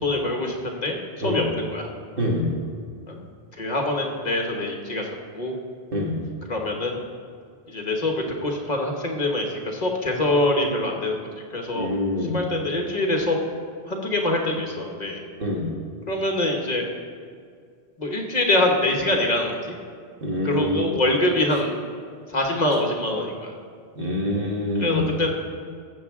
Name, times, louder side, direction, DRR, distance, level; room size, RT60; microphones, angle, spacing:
voice 1, 0.0-1.9 3.1-3.3 3.5-5.5 6.5-7.0 7.7-11.2 11.5-11.9 12.3-13.4 13.9-15.2 16.1-16.9 18.0-19.6 20.4-21.7 22.3-23.5 24.7-25.3, left 1 dB, 40° left, 1 dB, 1.2 m, -24 dB
voice 2, 11.7-12.3 15.4-15.7 20.2-20.8 24.0-25.0, left 1 dB, 55° right, -1 dB, 1.7 m, -25 dB
14.0 x 7.3 x 3.6 m, 2.1 s
omnidirectional pair, 1.1 m